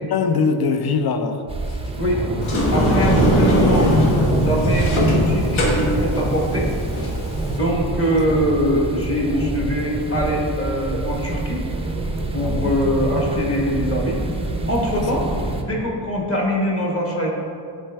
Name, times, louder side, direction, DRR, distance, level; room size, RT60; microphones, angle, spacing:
voice 1, 0.0-1.4 3.4-3.6 12.4-12.8 14.9-15.4, left 5 dB, 50° left, 8 dB, 0.6 m, -23 dB
sound 1, 1.5-15.6, right 2 dB, 15° right, 0.4 m, -24 dB
Sliding door, 2.4-7.6, left 1 dB, 70° left, 1.3 m, -21 dB
voice 2, 2.7-3.9 4.4-6.7 7.5-11.6 12.3-14.2 14.7-15.3 15.6-17.3, equal, 25° left, -2 dB, 1.2 m, -22 dB
10.5 x 4.4 x 3.4 m, 2.7 s
wide cardioid pair, 165°, 50 cm